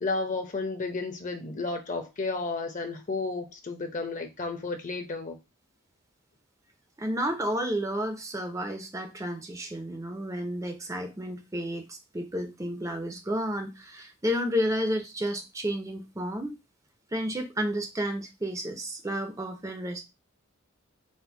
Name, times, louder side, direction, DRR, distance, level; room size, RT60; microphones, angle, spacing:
voice 1, 0.0-5.4, left 3 dB, 40° left, 0.7 m, -32 dB
voice 2, 7.0-16.6 17.1-20.0, equal, 15° right, 0.5 m, -31 dB
4.2 x 2.1 x 4.4 m
head